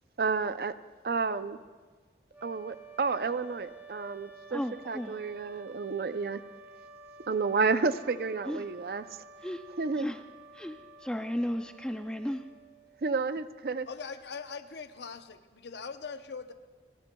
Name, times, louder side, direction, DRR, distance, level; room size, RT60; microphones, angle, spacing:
voice 1, 0.2-0.7 1.0-1.6 2.4-4.6 4.9-6.4 7.3-9.0 9.8-10.1 13.0-13.9, right 4 dB, 55° right, 13 dB, 0.5 m, -30 dB
sound 1, 2.3-13.2, right 3 dB, 10° right, 0.9 m, -52 dB
voice 2, 4.5-5.2 8.5-8.7 9.4-9.6 10.0-10.2 10.5-12.4, equal, 5° left, 8 dB, 0.3 m, -34 dB
voice 3, 13.9-16.5, left 5 dB, 75° left, 9 dB, 0.7 m, -41 dB
29.5 x 13.5 x 2.3 m, 1.4 s
head